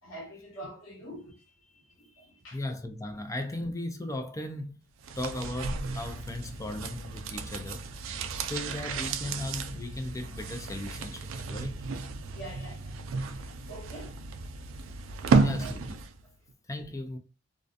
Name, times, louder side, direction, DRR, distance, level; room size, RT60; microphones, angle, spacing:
voice 1, 0.0-2.6 8.7-8.8 12.3-13.0 13.7-14.3 15.3-15.8, right 1 dB, 70° left, 1.3 m, -45 dB
voice 2, 2.5-4.8 5.2-7.9 8.5-11.8 15.4-15.8 16.7-17.2, left 1 dB, 15° left, 0.4 m, -36 dB
sound 1, 5.0-16.2 16.5-16.6, right 4 dB, 75° right, 0.3 m, -32 dB
2.4 x 2.2 x 2.5 m
head